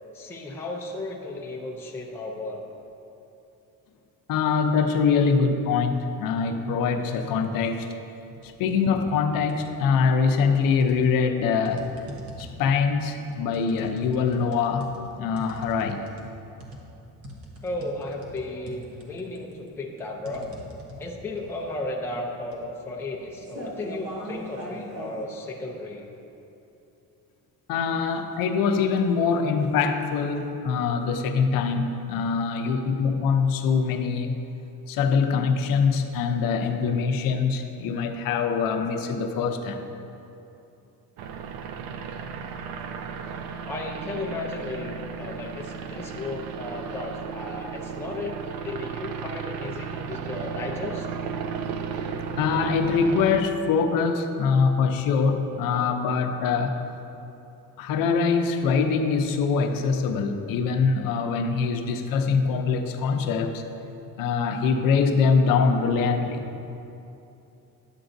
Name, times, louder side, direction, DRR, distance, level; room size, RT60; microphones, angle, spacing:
voice 1, 0.1-2.7 17.6-20.5 21.0-26.1 32.6-32.8 43.6-51.1, left 2 dB, 5° left, -1 dB, 0.4 m, -34 dB
voice 2, 4.3-7.9 8.4-11.9 12.4-16.1 21.0-21.1 27.7-34.4 34.9-39.9 52.4-56.8 57.8-63.6 64.2-66.4, left 5 dB, 70° left, 6 dB, 0.6 m, -23 dB
sound 1, 8.3-8.7 9.1-10.0 10.5-25.2, equal, 40° right, 1.0 m, -42 dB
sound 2, 41.2-53.4, right 6 dB, 80° right, 0.6 m, -34 dB
9.9 x 7.9 x 2.6 m, 2.9 s
cardioid pair, 175°, 35 cm